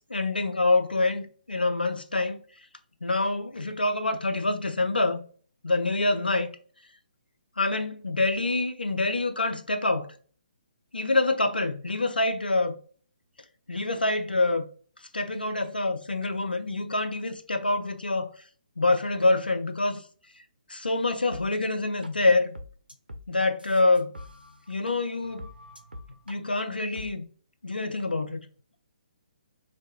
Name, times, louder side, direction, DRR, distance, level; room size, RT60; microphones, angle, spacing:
voice 1, 0.1-2.4 3.0-5.2 5.6-6.5 7.6-10.1 10.9-12.8 13.7-14.7 15.1-18.3 18.8-20.0 20.7-22.5 23.3-24.1 24.7-25.5 26.3-27.2 27.6-28.5, left 2 dB, 85° left, 0.4 m, -26 dB
sound 1, 21.3-21.4 22.0-22.1 22.6-24.9 25.2-26.4 27.0-27.1, left 1 dB, 90° right, 0.4 m, -44 dB
2.6 x 2.2 x 2.7 m
figure-of-eight pair, 135°, 5 cm